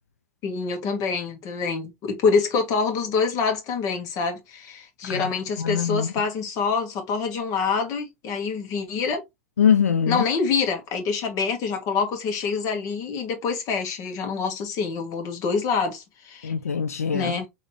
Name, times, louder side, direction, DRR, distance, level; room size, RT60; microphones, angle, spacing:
voice 1, 0.4-9.2 10.1-16.5 17.1-17.5, left 5 dB, 45° left, 1.7 m, -26 dB
voice 2, 5.6-6.1 9.6-10.2 16.4-17.4, left 7 dB, 90° left, 0.4 m, -22 dB
4.0 x 3.2 x 2.7 m
hypercardioid pair, 90°, 8 cm